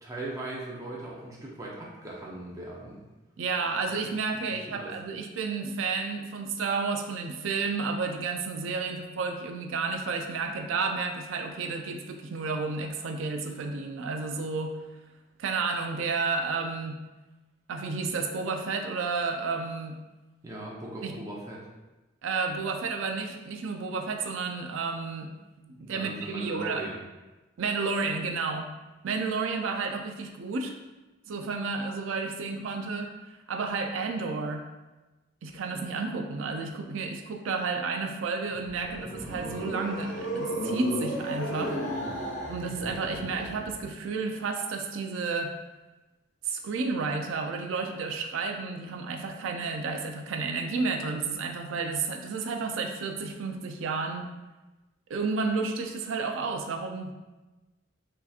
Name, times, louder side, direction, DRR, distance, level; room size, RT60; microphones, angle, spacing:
voice 1, 0.0-3.0 3.9-4.0 4.3-4.9 20.4-21.7 25.7-27.0, right 1 dB, 15° right, -4 dB, 0.6 m, -39 dB
voice 2, 3.4-14.7 15.4-17.0 17.7-20.0 21.0-21.1 22.2-25.3 25.7-26.8 27.6-28.7 29.0-30.7 31.3-33.1 33.5-34.6 35.4-41.8 42.5-45.5 46.4-54.3 55.1-57.1, right 4 dB, 75° right, 4 dB, 0.4 m, -31 dB
sound 1, 38.5-43.9, equal, 75° left, 1.3 m, -34 dB
6.4 x 2.8 x 2.4 m, 1.1 s
head